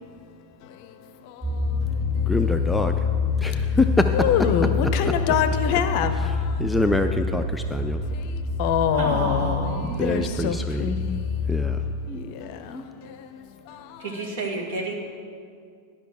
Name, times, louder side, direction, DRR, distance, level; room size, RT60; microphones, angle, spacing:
sound 1, 1.4-11.7, left 4 dB, 25° right, 2.8 m, -26 dB
voice 1, 2.3-3.1 3.4-5.2 5.7-5.8 6.1-8.0 10.0-10.9 11.5-11.8, left 2 dB, 5° left, 6 dB, 0.4 m, -26 dB
voice 2, 4.1-6.1 8.6-11.2 12.1-12.8, left 8 dB, 45° left, 10 dB, 0.6 m, -25 dB
voice 3, 8.9-10.0 14.0-14.9, right 3 dB, 55° right, 1 dB, 1.8 m, -30 dB
11.5 x 5.8 x 6.4 m, 2.2 s
figure-of-eight pair, 90°, 0 cm